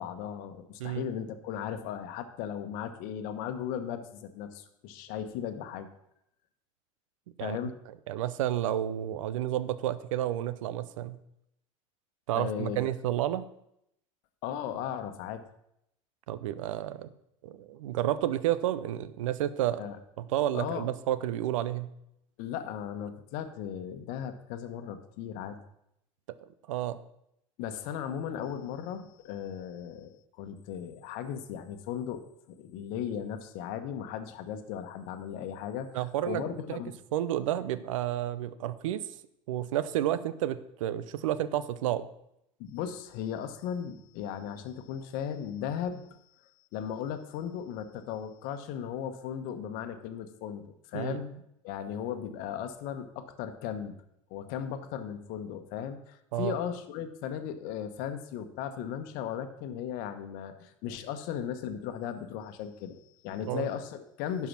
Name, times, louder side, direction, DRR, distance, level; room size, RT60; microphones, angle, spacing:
voice 1, 0.0-5.9 7.4-7.8 12.3-12.8 14.4-15.4 19.8-20.0 20.5-20.9 22.4-25.6 27.6-32.2 32.5-37.0 42.6-46.1 46.4-54.0 54.3-64.5, left 9 dB, 60° left, 9 dB, 1.1 m, -37 dB
voice 2, 8.1-11.2 12.3-13.5 16.3-17.1 17.4-19.8 20.2-21.9 26.7-27.0 35.9-36.8 37.1-39.0 39.5-42.1 50.9-51.2 56.3-56.6 63.5-63.7, right 12 dB, 75° right, 15 dB, 0.6 m, -31 dB
11.0 x 4.8 x 6.0 m, 0.77 s
hypercardioid pair, 80°, 17 cm